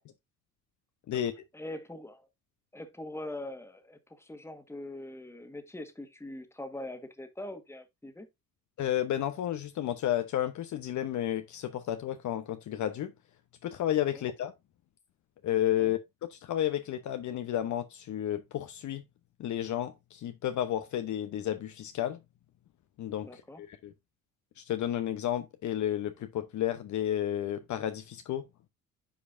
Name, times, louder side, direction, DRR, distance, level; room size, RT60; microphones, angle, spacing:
voice 1, 1.5-2.3 2.7-8.3 14.1-14.2 15.8-15.9 23.2-23.6, left 1 dB, 5° left, 1.6 m, -42 dB
voice 2, 8.8-13.1 13.6-14.5 15.4-16.0 16.3-19.0 19.4-22.2 23.0-23.9 24.6-28.4, left 11 dB, 45° left, 0.9 m, -32 dB
10.0 x 5.0 x 2.6 m
hypercardioid pair, 55°, 41 cm